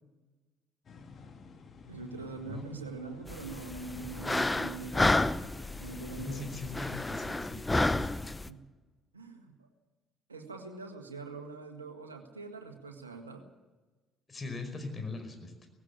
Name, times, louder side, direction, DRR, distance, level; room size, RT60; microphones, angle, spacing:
sound 1, 0.8-7.0, left 4 dB, 45° left, 2.6 m, -51 dB
voice 1, 1.9-5.3 5.8-6.5 8.5-8.6 9.1-9.7 10.3-13.4, right 3 dB, 90° right, 4 dB, 1.7 m, -43 dB
sound 2, 3.3-8.5, left 2 dB, 15° left, 0.9 m, -31 dB
voice 2, 6.1-8.3 14.3-15.7, left 3 dB, 30° left, 6 dB, 5.2 m, -40 dB
18.5 x 16.5 x 8.9 m, 1.2 s
figure-of-eight pair, 50°, 0 cm